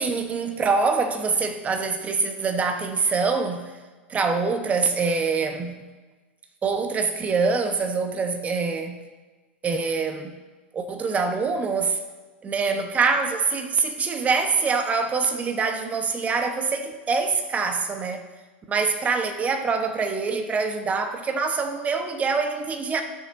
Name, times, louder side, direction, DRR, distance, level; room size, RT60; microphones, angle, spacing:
voice 1, 0.0-3.7 4.1-5.7 6.6-9.0 9.6-10.4 10.7-12.0 12.4-18.2 18.7-23.0, right 4 dB, 20° right, 5 dB, 0.9 m, -25 dB
15.5 x 6.8 x 2.6 m, 1.3 s
hypercardioid pair, 100°, 6 cm